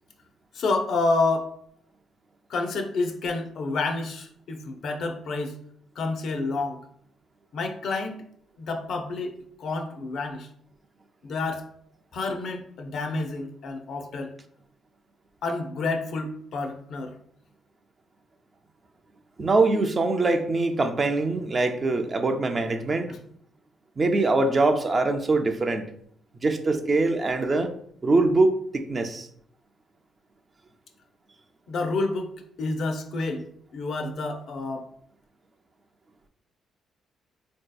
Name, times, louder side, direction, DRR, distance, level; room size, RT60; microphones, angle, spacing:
voice 1, 0.5-1.5 2.5-5.6 6.0-6.8 7.5-8.2 8.6-10.5 11.2-11.7 12.1-14.3 15.4-17.1 23.1-23.2 31.7-33.4 33.7-34.9, left 3 dB, 65° left, 4 dB, 0.5 m, -29 dB
voice 2, 19.4-23.1 24.0-25.9 26.4-27.7 28.0-29.3, right 3 dB, 35° right, 6 dB, 0.3 m, -23 dB
3.9 x 2.7 x 2.2 m, 0.67 s
cardioid pair, 90°, 0 cm